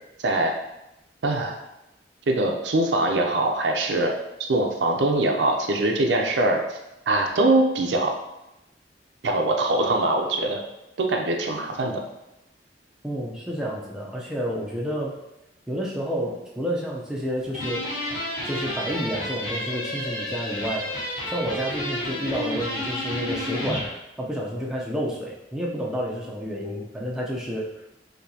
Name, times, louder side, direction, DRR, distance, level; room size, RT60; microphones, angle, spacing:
voice 1, 0.2-0.5 1.2-1.5 2.3-4.1 4.5-6.8 7.1-8.1 9.2-10.6 11.0-12.0, right 2 dB, 85° right, 2 dB, 0.5 m, -22 dB
voice 2, 13.0-15.1 15.7-17.8 18.4-23.8 24.2-27.7, equal, 5° right, -4 dB, 0.5 m, -30 dB
sound 1, 17.5-23.9, left 1 dB, 45° left, 1.3 m, -31 dB
4.3 x 2.8 x 2.7 m, 0.92 s
head